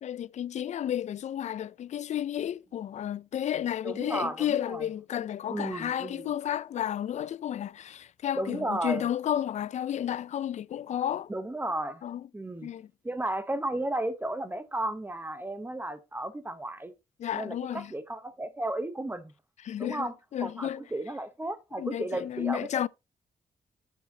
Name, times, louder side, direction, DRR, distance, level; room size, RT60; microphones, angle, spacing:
voice 1, 0.0-11.3 12.0-12.2 12.6-12.9 17.2-17.9 19.6-20.8 21.8-22.9, left 10 dB, 55° left, 0.4 m, -32 dB
voice 2, 3.8-4.9 5.5-6.3 8.4-9.1 11.3-12.0 12.3-12.7 13.0-16.9 17.3-19.3 19.8-20.1 20.4-22.9, right 1 dB, 15° right, 0.9 m, -34 dB
9.6 x 7.4 x 2.8 m
cardioid pair, 105°, 14 cm